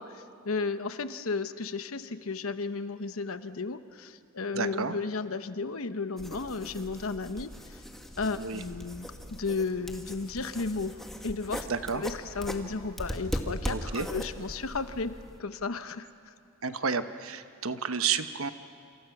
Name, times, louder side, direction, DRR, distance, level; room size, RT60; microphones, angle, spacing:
voice 1, 0.0-7.8 8.2-11.0 11.2-11.7 11.9-16.3, left 4 dB, 85° left, 10 dB, 1.0 m, -34 dB
voice 2, 4.5-5.0 8.4-8.6 11.7-12.0 13.7-14.1 16.6-18.5, right 5 dB, 85° right, 10 dB, 1.1 m, -31 dB
sound 1, 6.2-15.4, equal, ahead, 1.7 m, -39 dB
28.0 x 27.5 x 6.0 m, 2.3 s
head